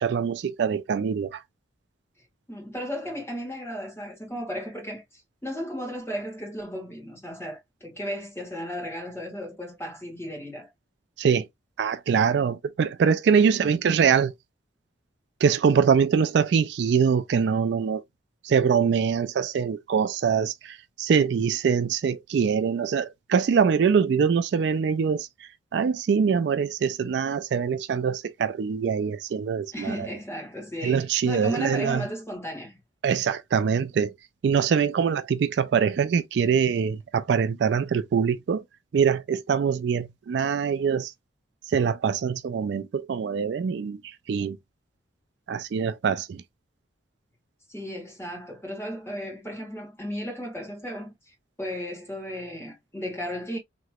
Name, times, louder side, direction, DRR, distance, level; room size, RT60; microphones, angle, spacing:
voice 1, 0.0-1.4 11.2-11.5 11.8-14.3 15.4-18.0 18.4-25.3 25.7-30.1 30.8-32.1 33.0-34.1 34.4-38.6 38.9-41.1 41.7-44.0 44.3-44.6 45.5-46.4, right 6 dB, 65° right, 0.3 m, -23 dB
voice 2, 2.5-10.7 13.4-13.7 29.7-32.8 47.7-53.6, equal, 15° left, 1.4 m, -35 dB
3.0 x 2.9 x 2.2 m
head